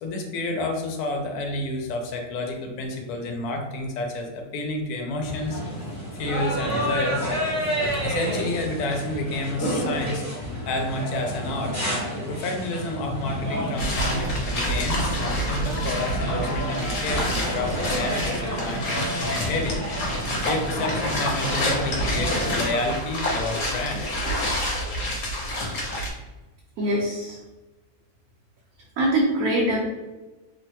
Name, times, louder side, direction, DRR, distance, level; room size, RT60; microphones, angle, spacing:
voice 1, 0.0-5.6 6.1-7.2 7.6-7.7 8.0-11.8 12.3-19.8 20.4-24.2, left 2 dB, 80° left, 3 dB, 1.1 m, -30 dB
sound 1, 5.2-22.6, equal, 15° right, 0.7 m, -30 dB
sound 2, 13.8-26.1, equal, 60° left, 1.1 m, -28 dB
voice 2, 26.8-27.4 29.0-29.8, right 1 dB, 75° right, -4 dB, 1.1 m, -23 dB
3.2 x 2.1 x 2.8 m, 1.1 s
omnidirectional pair, 1.6 m